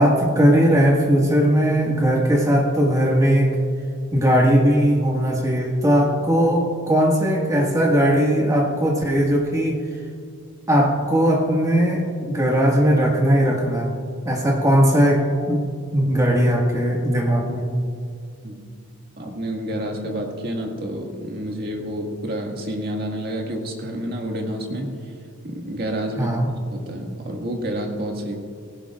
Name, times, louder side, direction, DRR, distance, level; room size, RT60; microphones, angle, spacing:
voice 1, 0.0-3.6 4.1-9.8 10.7-13.9 14.2-15.6 15.9-17.7 26.2-26.5, equal, 15° right, -2 dB, 1.8 m, -18 dB
voice 2, 19.2-25.1 25.4-28.4, right 1 dB, 45° right, 1 dB, 1.9 m, -29 dB
18.5 x 17.0 x 2.5 m, 2.4 s
head